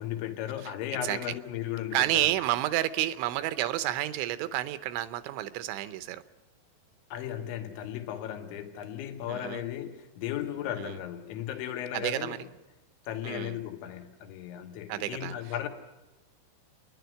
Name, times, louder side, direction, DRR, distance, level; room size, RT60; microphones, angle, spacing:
voice 1, 0.0-2.3 7.1-12.4 13.1-15.7, left 11 dB, 90° left, 5 dB, 3.6 m, -36 dB
voice 2, 1.0-1.4 1.9-6.2 9.3-9.6 10.8-11.0 11.9-12.4 13.2-13.6 14.9-15.7, right 14 dB, 85° right, 13 dB, 3.2 m, -30 dB
28.5 x 11.0 x 9.3 m, 1.1 s
omnidirectional pair, 5.2 m